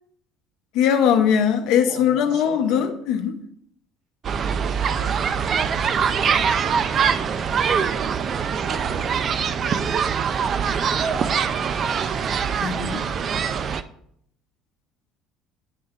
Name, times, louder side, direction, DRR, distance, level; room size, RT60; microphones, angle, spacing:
voice 1, 0.7-3.4 12.6-13.0, left 8 dB, 60° left, 6 dB, 0.8 m, -20 dB
voice 2, 1.7-2.9 4.4-7.1 7.5-8.1 8.5-12.2, right 3 dB, 60° right, -3 dB, 2.5 m, -40 dB
sound 1, 4.2-13.8, right 7 dB, 30° right, 0.3 m, -23 dB
9.9 x 3.3 x 3.7 m, 0.69 s
cardioid pair, 175°, 0 cm